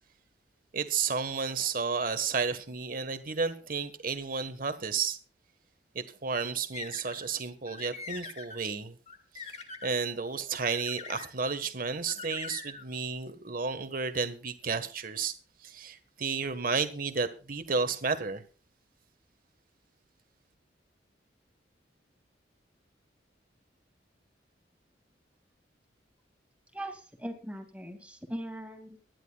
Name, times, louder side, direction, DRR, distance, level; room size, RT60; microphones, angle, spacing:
voice 1, 0.7-5.2 5.9-9.0 9.3-9.5 9.8-15.3 15.6-18.4, right 5 dB, 50° right, 1.4 m, -32 dB
sound 1, 6.7-7.3 7.7-8.6 9.1-9.9 10.7-11.3 12.1-12.8, left 5 dB, 35° left, 1.8 m, -42 dB
voice 2, 26.7-29.0, right 1 dB, 5° right, 2.3 m, -40 dB
23.5 x 11.0 x 2.4 m
head